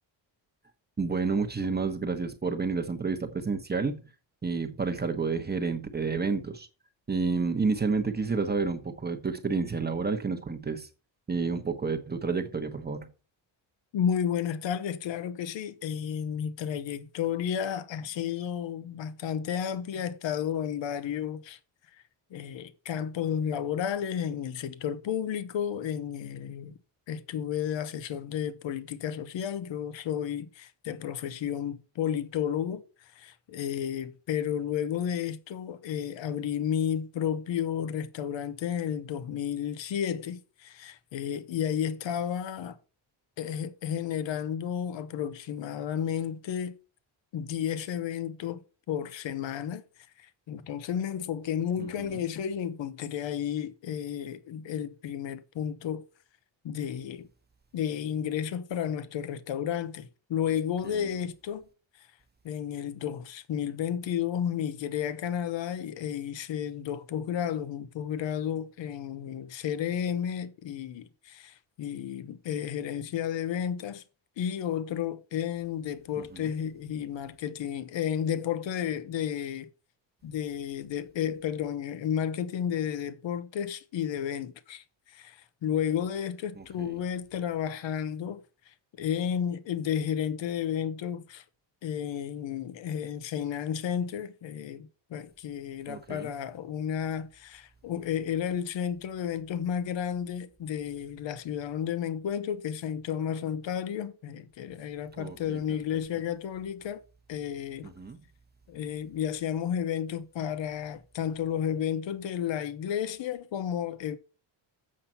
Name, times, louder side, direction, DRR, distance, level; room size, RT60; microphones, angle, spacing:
voice 1, 1.0-4.2 4.4-6.7 7.1-10.9 11.3-13.1 51.8-52.2 60.8-61.2 76.2-76.6 86.5-87.0 95.9-96.4 105.1-105.8 107.8-108.3, right 4 dB, 20° right, 1.0 m, -30 dB
voice 2, 13.9-21.6 21.9-22.0 22.3-26.7 27.1-42.8 43.4-46.7 47.3-48.6 48.9-49.8 50.2-56.0 56.6-57.3 57.7-61.7 62.0-62.1 62.4-74.0 74.4-79.7 80.2-91.4 91.8-107.0 107.3-107.9 108.7-114.2, left 9 dB, 70° left, 1.0 m, -32 dB
7.7 x 5.7 x 5.6 m
cardioid pair, 110°, 47 cm